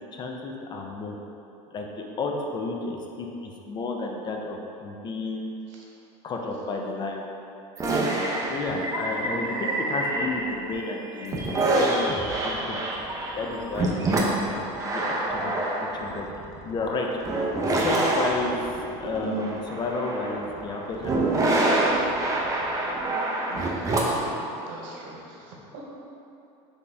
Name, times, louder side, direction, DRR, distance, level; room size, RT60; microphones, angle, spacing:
voice 1, 0.1-1.2 1.7-5.5 6.2-7.2 8.5-12.1 12.4-12.8 13.4-15.5 16.0-16.3 16.6-17.1 17.3-17.5 17.8-18.6 19.0-21.4, left 3 dB, 30° left, 1 dB, 0.4 m, -32 dB
sound 1, 7.8-10.7 11.2-24.3, right 2 dB, 20° right, 0.6 m, -26 dB
voice 2, 23.5-25.8, right 3 dB, 85° right, -2 dB, 0.9 m, -40 dB
4.0 x 3.4 x 3.3 m, 2.8 s
supercardioid pair, 135°, 15 cm